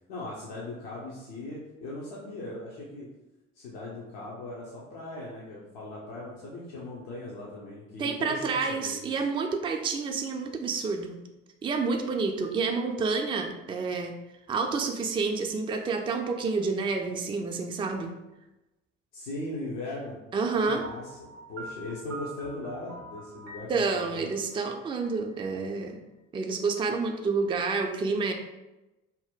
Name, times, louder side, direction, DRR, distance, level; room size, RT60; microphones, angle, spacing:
voice 1, 0.1-3.1 3.5-9.1 19.1-20.2 20.6-21.2 21.5-24.3, left 2 dB, 70° left, -5 dB, 0.7 m, -39 dB
voice 2, 8.0-11.2 11.6-14.1 14.5-18.1 20.3-20.8 23.7-26.0 26.3-28.3, right 4 dB, 15° right, 3 dB, 0.3 m, -29 dB
Piano, 20.8-25.7, right 2 dB, 85° right, 0.5 m, -45 dB
2.7 x 2.1 x 3.5 m, 1.0 s
figure-of-eight pair, 45°, 37 cm